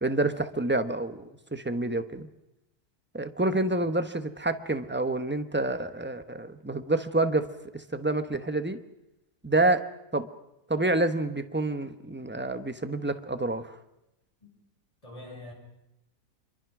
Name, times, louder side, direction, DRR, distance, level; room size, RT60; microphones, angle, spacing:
voice 1, 0.0-2.3 3.1-7.5 7.7-8.8 9.4-9.8 10.1-10.3 10.7-13.7, right 2 dB, 10° right, 9 dB, 0.9 m, -28 dB
voice 2, 15.0-15.5, left 1 dB, 20° left, -1 dB, 7.3 m, -45 dB
27.0 x 23.0 x 6.1 m, 0.91 s
omnidirectional pair, 1.6 m